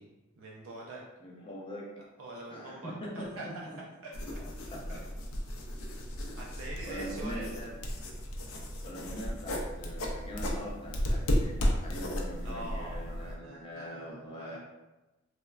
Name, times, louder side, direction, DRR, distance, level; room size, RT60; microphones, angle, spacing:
voice 1, 0.0-1.0 2.0-3.5 4.0-4.2 4.9-5.0 6.0-6.1 6.4-7.5 12.4-14.6, right 2 dB, 70° right, -3 dB, 0.4 m, -44 dB
voice 2, 1.2-1.9 2.5-3.8 4.3-4.8 6.2-6.3 6.9-7.7 8.8-14.6, equal, 25° left, -3 dB, 0.5 m, -42 dB
sound 1, 4.1-13.4, equal, 80° left, 0.5 m, -34 dB
3.2 x 2.1 x 2.3 m, 1.1 s
head